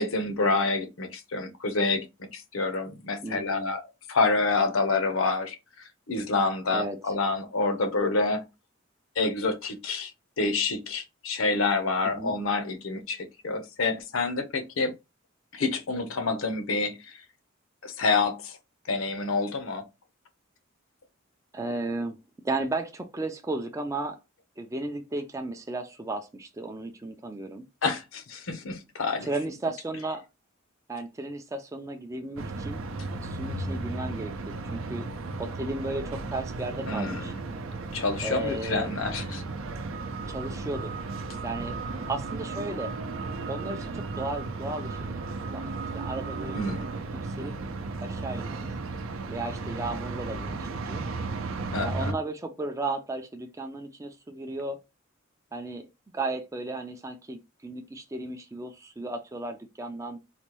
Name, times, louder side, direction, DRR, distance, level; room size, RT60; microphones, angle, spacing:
voice 1, 0.0-2.0 2.3-3.8 4.1-5.6 6.1-8.4 9.2-10.1 10.4-14.9 15.5-17.2 17.8-18.6 18.9-19.8 27.8-29.3 36.9-37.4 37.9-39.4 46.5-46.9 51.7-52.2, left 3 dB, 80° left, 0.8 m, -27 dB
voice 2, 3.2-3.7 6.7-7.0 12.0-12.3 21.5-22.2 22.4-24.2 24.6-27.6 29.2-30.2 30.9-32.9 33.2-35.1 35.4-37.3 38.2-38.9 40.3-40.9 41.4-41.7 42.1-42.9 43.5-45.1 45.5-45.6 45.9-46.6 47.1-47.6 48.0-48.7 49.3-51.0 51.8-54.8 55.5-55.9 56.1-60.2, right 2 dB, 15° right, 0.4 m, -34 dB
sound 1, 32.4-52.1, right 3 dB, 75° right, 0.5 m, -35 dB
4.1 x 2.2 x 3.0 m
head